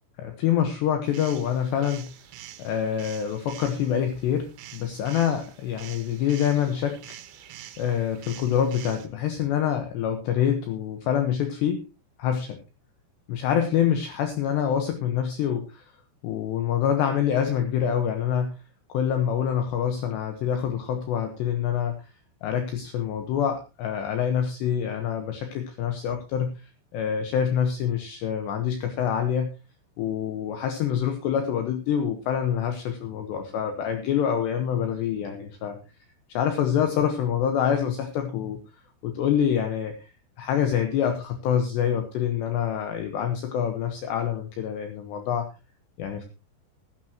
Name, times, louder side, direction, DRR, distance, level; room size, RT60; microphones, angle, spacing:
voice 1, 0.2-2.1 2.6-7.0 7.8-11.8 12.2-12.6 13.3-15.9 16.2-18.6 18.9-22.0 22.4-29.5 30.0-35.8 36.3-38.6 39.0-39.9 40.4-45.5 46.0-46.2, left 9 dB, 70° left, 6 dB, 3.1 m, -26 dB
sound 1, 1.0-9.1, right 12 dB, 75° right, 3.4 m, -46 dB
15.0 x 14.5 x 2.9 m, 0.30 s
omnidirectional pair, 5.7 m